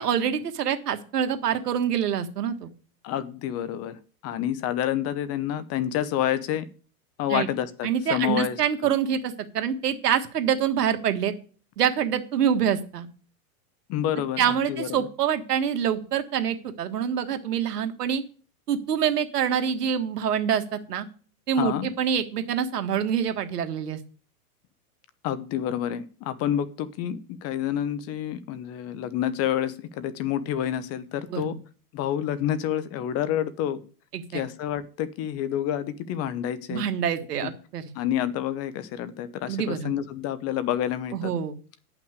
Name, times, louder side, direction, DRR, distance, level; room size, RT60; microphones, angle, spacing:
voice 1, 0.0-2.7 7.3-7.5 7.8-11.3 11.8-13.1 14.4-18.2 18.7-21.0 21.5-24.0 31.3-31.5 34.1-34.4 36.7-37.9 39.5-39.9 41.1-41.5, right 8 dB, 85° right, 8 dB, 1.6 m, -26 dB
voice 2, 3.0-4.0 4.2-6.7 7.2-8.6 13.9-15.1 21.5-21.9 25.2-31.6 31.9-33.8 34.3-36.8 37.4-37.5 37.9-41.3, left 10 dB, 30° left, 14 dB, 0.9 m, -28 dB
10.0 x 5.9 x 8.2 m, 0.40 s
hypercardioid pair, 130°, 46 cm